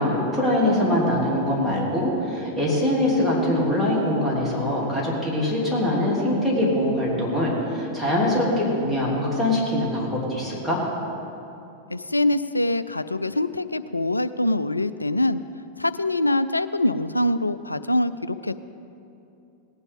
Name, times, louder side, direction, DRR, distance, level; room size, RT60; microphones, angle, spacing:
voice 1, 0.0-10.8, left 1 dB, 5° left, -7 dB, 3.0 m, -23 dB
voice 2, 11.9-15.4 15.8-18.5, left 1 dB, 85° left, 13 dB, 0.3 m, -24 dB
18.0 x 9.7 x 3.7 m, 2.8 s
figure-of-eight pair, 90°, 0 cm